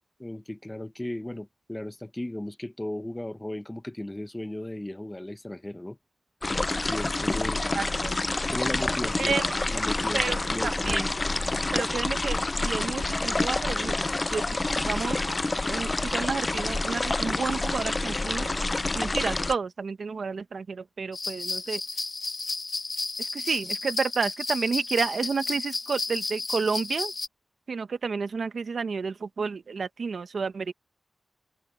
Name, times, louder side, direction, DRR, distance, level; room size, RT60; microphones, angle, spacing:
voice 1, 0.2-6.0 6.9-7.6 8.5-9.4 9.7-11.1, left 1 dB, 15° left, 0.9 m, -36 dB
sound 1, 6.4-19.6, left 2 dB, 30° left, 0.4 m, -28 dB
voice 2, 7.7-8.2 9.2-9.5 10.1-11.1 11.7-14.0 14.3-15.2 15.6-18.6 18.9-21.8 23.2-27.1 27.7-30.7, right 5 dB, 80° right, 1.4 m, -31 dB
sound 2, 21.1-27.3, left 3 dB, 45° left, 1.7 m, -32 dB
wide cardioid pair, 115°, 0 cm